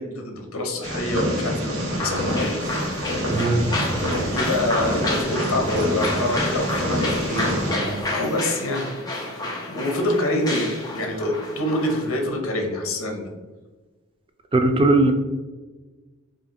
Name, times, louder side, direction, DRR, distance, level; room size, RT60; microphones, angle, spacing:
voice 1, 0.0-3.3 4.2-8.9 9.7-13.3, left 1 dB, 80° left, 2 dB, 0.7 m, -26 dB
Purr, 0.8-7.7, equal, 85° right, 1.1 m, -27 dB
sound 1, 1.9-2.7 3.0-8.0, right 2 dB, 65° right, 0.6 m, -35 dB
sound 2, 2.0-12.2, left 2 dB, 15° left, 0.6 m, -30 dB
voice 2, 3.3-3.7 14.5-15.1, right 2 dB, 25° right, 5 dB, 0.3 m, -18 dB
4.7 x 2.5 x 2.7 m, 1.2 s
head